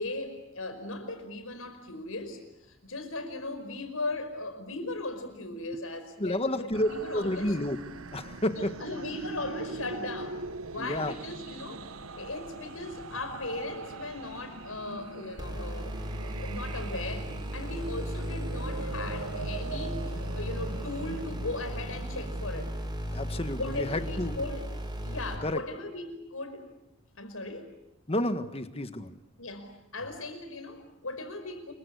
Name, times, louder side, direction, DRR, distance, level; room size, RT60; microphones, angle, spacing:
voice 1, 0.0-7.6 8.5-10.4 10.7-11.8 12.2-22.7 23.5-24.6 25.0-26.7 27.1-27.7 29.4-31.7, left 2 dB, 80° left, 8 dB, 5.3 m, -38 dB
voice 2, 6.2-7.8 8.1-8.7 10.8-11.1 23.1-24.3 25.4-25.6 28.1-29.1, left 1 dB, 30° left, 10 dB, 1.5 m, -30 dB
sound 1, 6.7-22.7, right 3 dB, 85° right, 1.2 m, -42 dB
sound 2, 15.4-25.4, equal, 20° right, 6.3 m, -36 dB
28.5 x 23.5 x 8.3 m, 0.86 s
head